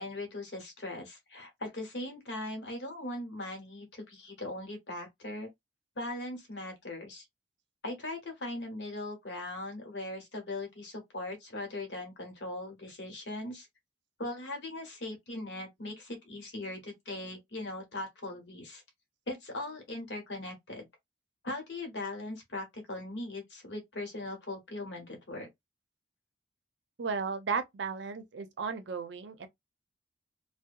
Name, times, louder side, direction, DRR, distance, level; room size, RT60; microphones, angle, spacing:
voice 1, 0.0-5.5 5.9-7.3 7.8-13.7 14.2-18.8 19.3-20.9 21.4-25.5, left 2 dB, 70° left, 1.1 m, -39 dB
voice 2, 27.0-29.5, right 5 dB, 75° right, 0.5 m, -34 dB
2.7 x 2.1 x 2.5 m
head